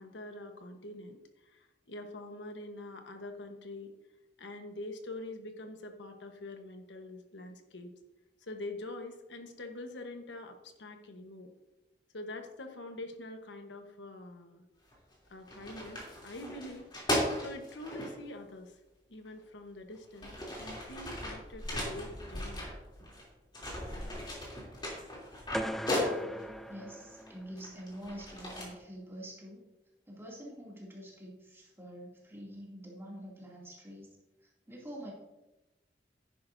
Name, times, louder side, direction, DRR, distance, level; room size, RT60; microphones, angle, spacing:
voice 1, 0.0-3.9 4.4-7.9 8.4-11.5 12.1-14.6 15.3-16.9 17.3-18.8 19.1-22.7, left 2 dB, 90° left, 5 dB, 1.2 m, -45 dB
sound 1, 14.9-15.1 15.5-18.1 19.2-19.3 19.9-23.2 23.5-26.5 27.2-28.6, left 1 dB, 25° left, 3.1 m, -37 dB
voice 2, 23.9-24.4 25.6-29.6 30.1-34.1 34.4-35.1, equal, 15° right, -4 dB, 2.6 m, -47 dB
sound 2, 25.5-27.7, equal, ahead, 0.3 m, -39 dB
10.5 x 10.0 x 2.7 m, 1.0 s
head